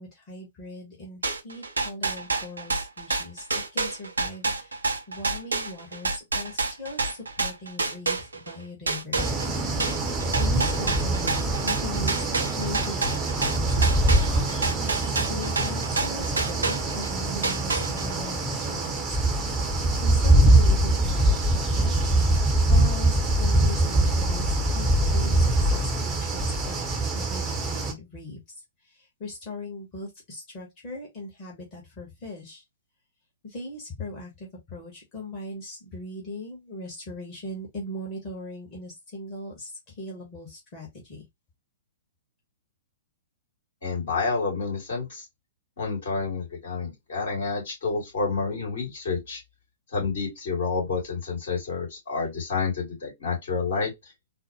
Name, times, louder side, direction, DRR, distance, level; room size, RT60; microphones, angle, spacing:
voice 1, 0.0-3.5 3.7-10.1 10.4-19.2 20.0-28.4 28.8-32.6 33.4-41.3, left 2 dB, 30° left, 1.4 m, -40 dB
sound 1, 1.2-8.5 8.9-17.1 17.4-18.2, right 3 dB, 70° right, 0.6 m, -28 dB
sound 2, 9.1-27.9, right 1 dB, 15° right, 0.8 m, -23 dB
voice 2, 43.8-45.2 45.8-49.4 49.9-53.9, left 4 dB, 55° left, 2.5 m, -29 dB
4.0 x 2.1 x 3.0 m
figure-of-eight pair, 110°, 0 cm